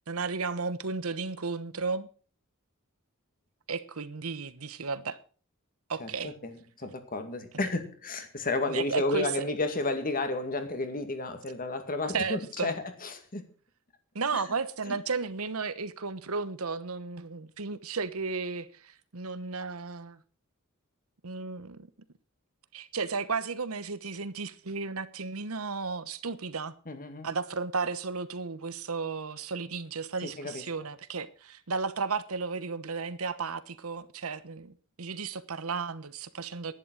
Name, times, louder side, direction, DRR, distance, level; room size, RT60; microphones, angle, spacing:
voice 1, 0.1-2.1 3.7-5.2 5.9-6.3 8.7-9.3 12.1-12.7 14.1-20.2 21.2-21.9 22.7-26.7 27.2-36.7, right 4 dB, 80° right, 1.1 m, -34 dB
voice 2, 6.0-13.5 14.3-14.4 14.9-15.0 26.9-27.3 30.2-30.6, left 2 dB, 40° left, 2.1 m, -32 dB
11.0 x 11.0 x 6.3 m
head